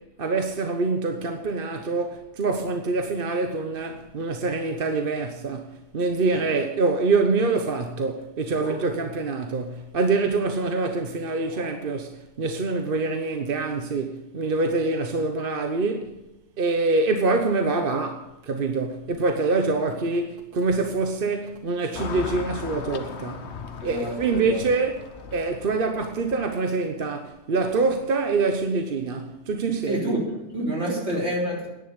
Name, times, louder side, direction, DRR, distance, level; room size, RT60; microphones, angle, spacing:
voice 1, 0.0-16.2 16.6-23.6 23.8-30.1 31.1-31.2, right 3 dB, 55° right, 1.1 m, -25 dB
Car passing by / Traffic noise roadway noise, 21.9-26.6, left 6 dB, 70° left, 1.3 m, -37 dB
voice 2, 23.8-24.6 29.9-31.7, equal, 75° right, 4.2 m, -28 dB
10.5 x 10.0 x 8.1 m
omnidirectional pair, 1.2 m